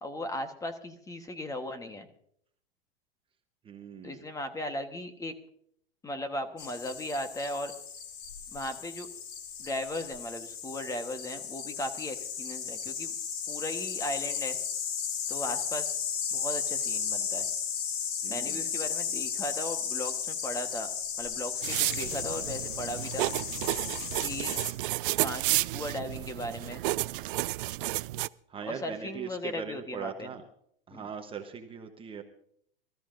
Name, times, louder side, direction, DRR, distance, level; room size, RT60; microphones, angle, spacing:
voice 1, 0.0-2.1 4.0-5.3 6.0-7.7 8.5-9.1 9.6-13.1 13.5-14.6 15.3-15.9 16.3-17.5 18.3-20.9 21.2-23.4 24.2-24.6 25.2-26.8 28.7-30.3 30.9-31.1, left 1 dB, 10° left, 8 dB, 1.2 m, -37 dB
voice 2, 3.6-4.3 18.2-18.7 28.5-30.4 30.9-32.2, right 6 dB, 20° right, 5 dB, 1.0 m, -40 dB
sound 1, 6.6-24.7, left 7 dB, 55° left, 2.4 m, -35 dB
sound 2, 21.6-28.3, right 18 dB, 65° right, 0.4 m, -31 dB
25.0 x 14.0 x 2.6 m, 0.66 s
hypercardioid pair, 130°, 29 cm